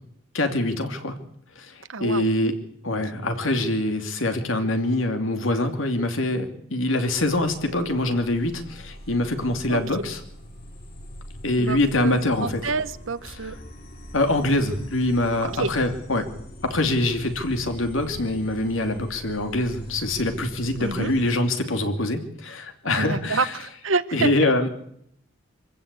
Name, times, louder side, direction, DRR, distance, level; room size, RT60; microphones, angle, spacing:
voice 1, 0.3-1.2 1.6-2.6 2.8-10.2 11.4-12.7 14.1-16.3 16.6-23.5 24.1-24.7, left 1 dB, 70° left, 6 dB, 2.8 m, -24 dB
voice 2, 1.9-2.3 9.7-9.8 11.6-13.5 15.4-15.7 20.8-21.1 23.0-24.5, right 4 dB, 70° right, 14 dB, 1.1 m, -28 dB
sound 1, 7.0-21.3, equal, 50° left, 6.0 m, -43 dB
25.0 x 15.5 x 8.5 m, 0.73 s
head